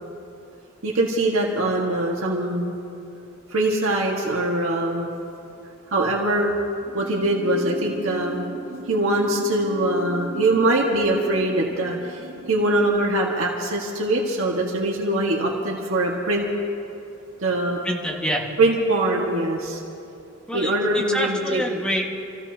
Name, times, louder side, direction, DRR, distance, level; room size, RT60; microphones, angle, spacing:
voice 1, 0.8-2.8 3.5-5.1 5.9-6.5 6.9-8.5 8.9-12.2 12.5-16.5 17.4-17.8 18.6-19.8 20.5-21.6, right 1 dB, 75° right, -2 dB, 1.7 m, -22 dB
sound 1, 6.8-13.0, right 2 dB, 45° right, 1.8 m, -38 dB
voice 2, 17.8-18.5 20.5-22.1, equal, 5° left, -2 dB, 1.7 m, -27 dB
28.5 x 15.5 x 2.9 m, 2.6 s
head